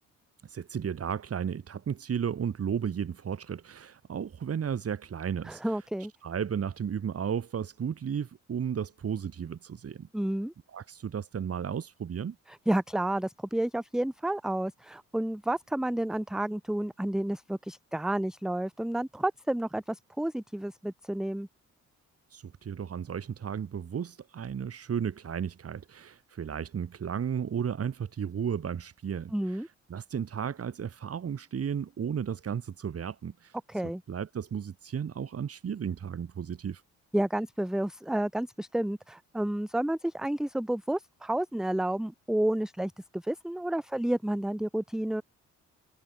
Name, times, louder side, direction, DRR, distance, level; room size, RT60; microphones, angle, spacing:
voice 1, 0.4-5.8 6.2-10.1 10.7-12.4 22.3-33.6 34.1-36.8, right 7 dB, 50° right, 6.2 m, -34 dB
voice 2, 5.4-6.1 10.1-10.5 12.5-21.5 29.3-29.7 33.7-34.0 37.1-45.2, right 1 dB, ahead, 0.7 m, -30 dB
cardioid pair, 90°, 30 cm